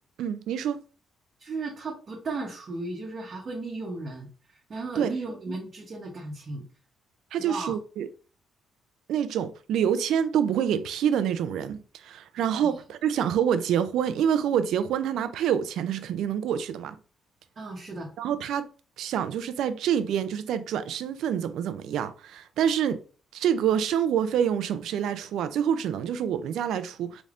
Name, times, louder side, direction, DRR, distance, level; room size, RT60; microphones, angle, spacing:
voice 1, 0.2-0.8 5.0-5.1 5.5-5.6 7.3-8.1 9.1-16.9 18.2-18.7 19.0-23.0 23.3-27.2, right 9 dB, 80° right, 0.4 m, -27 dB
voice 2, 1.4-4.3 4.7-6.7 7.4-7.7 12.6-12.7 17.6-18.1, right 3 dB, 45° right, 1.0 m, -35 dB
4.0 x 3.3 x 2.5 m
cardioid pair, 90°, 0 cm